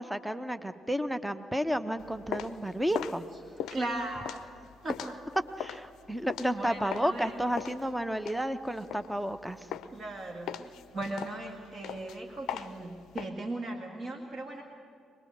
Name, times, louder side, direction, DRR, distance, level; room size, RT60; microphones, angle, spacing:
voice 1, 0.0-3.3 5.6-9.7, equal, 5° right, 10 dB, 1.0 m, -32 dB
sound 1, 2.0-7.2 7.6-9.4 9.7-10.1 10.5-13.3, left 9 dB, 60° left, 0.6 m, -39 dB
voice 2, 3.7-4.4 4.8-5.2 6.5-7.4 9.9-14.6, right 2 dB, 35° right, 3 dB, 1.9 m, -37 dB
23.5 x 20.5 x 6.6 m, 2.3 s
figure-of-eight pair, 45°, 0 cm